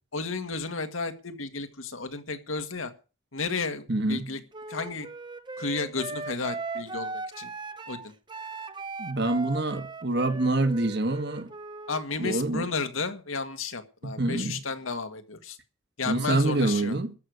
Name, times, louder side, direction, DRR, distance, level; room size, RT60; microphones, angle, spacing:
voice 1, 0.1-2.9 3.3-4.4 4.7-5.1 5.6-7.5 7.9-8.1 11.9-15.6 16.0-17.0, left 4 dB, 85° left, 1.9 m, -33 dB
voice 2, 3.9-4.3 9.0-11.5 12.2-12.6 14.0-14.6 16.0-17.1, right 2 dB, 55° right, 1.6 m, -26 dB
Wind instrument woodwind instrument, 4.5-12.0, right 3 dB, 25° right, 0.8 m, -38 dB
13.5 x 6.6 x 9.4 m
head